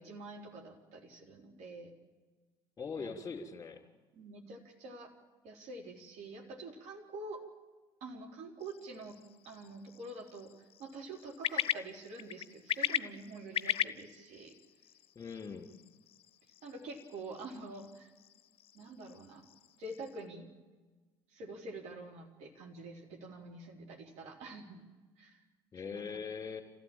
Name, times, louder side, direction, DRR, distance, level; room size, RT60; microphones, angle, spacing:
voice 1, 0.0-1.9 3.0-3.1 4.1-5.1 5.4-7.4 8.0-9.2 9.4-14.5 16.6-18.1 18.7-19.5 19.8-20.5 21.3-24.8 25.2-25.4 25.8-26.2, right 2 dB, 55° right, 1 dB, 3.6 m, -47 dB
voice 2, 2.8-3.8 15.1-15.7 25.7-26.6, left 5 dB, 25° left, 5 dB, 3.3 m, -41 dB
sound 1, 8.6-20.3, left 10 dB, 45° left, 0.7 m, -40 dB
26.5 x 15.5 x 9.0 m, 1.3 s
figure-of-eight pair, 55°, 14 cm